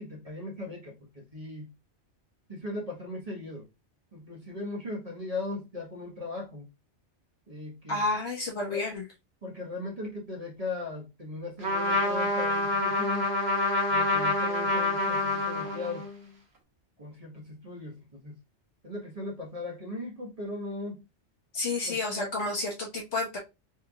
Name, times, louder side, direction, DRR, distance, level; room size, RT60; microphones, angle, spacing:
voice 1, 0.0-1.7 2.5-3.7 4.1-6.7 7.5-8.1 8.7-8.8 9.4-13.3 13.9-16.1 17.0-18.4 18.8-21.0 21.8-22.3, left 2 dB, 30° right, 1.5 m, -38 dB
voice 2, 7.9-9.1 21.5-23.4, left 2 dB, 70° left, 1.6 m, -30 dB
Trumpet, 11.6-16.2, left 2 dB, 65° right, 1.2 m, -27 dB
4.4 x 3.5 x 2.4 m
omnidirectional pair, 1.2 m